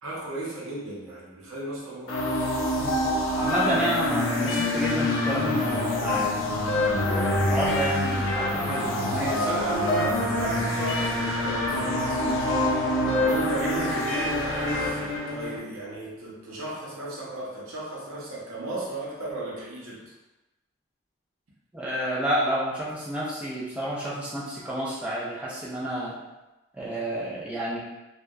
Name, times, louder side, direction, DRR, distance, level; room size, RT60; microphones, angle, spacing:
voice 1, 0.0-2.3 9.3-12.1 13.0-20.1, right 2 dB, 90° right, -5 dB, 0.7 m, -35 dB
sound 1, 2.1-15.6, left 1 dB, 65° left, 0.4 m, -26 dB
voice 2, 2.8-3.1 3.4-6.3 7.0-9.5 21.7-26.2 26.8-27.8, right 1 dB, 5° right, -8 dB, 0.4 m, -29 dB
2.8 x 2.2 x 2.3 m, 1.0 s
head